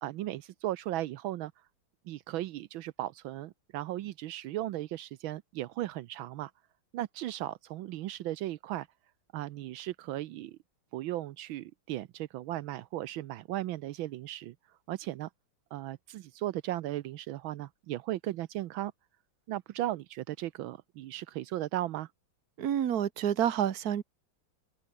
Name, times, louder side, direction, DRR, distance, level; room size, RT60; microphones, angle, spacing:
voice 1, 0.0-1.5 2.1-6.5 6.9-8.9 9.3-10.6 10.9-14.5 14.9-15.3 15.7-18.9 19.5-22.1, right 14 dB, 80° right, 1.5 m, -36 dB
voice 2, 22.6-24.0, right 10 dB, 50° right, 1.6 m, -28 dB
omnidirectional pair, 2.2 m